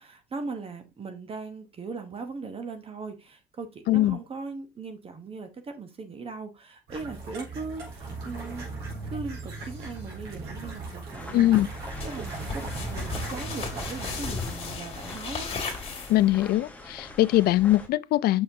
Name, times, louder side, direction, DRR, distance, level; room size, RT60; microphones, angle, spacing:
voice 1, 0.0-8.7 9.1-15.5, right 4 dB, 35° right, 1.0 m, -39 dB
voice 2, 3.9-4.2 11.3-11.7 16.1-18.4, left 15 dB, 65° left, 0.4 m, -22 dB
sound 1, 6.9-14.3, right 3 dB, 85° right, 4.0 m, -38 dB
sound 2, 11.1-17.9, left 2 dB, 10° left, 1.4 m, -43 dB
sound 3, 12.0-16.5, left 5 dB, 35° left, 2.2 m, -36 dB
6.4 x 5.7 x 2.7 m
cardioid pair, 110°, 17 cm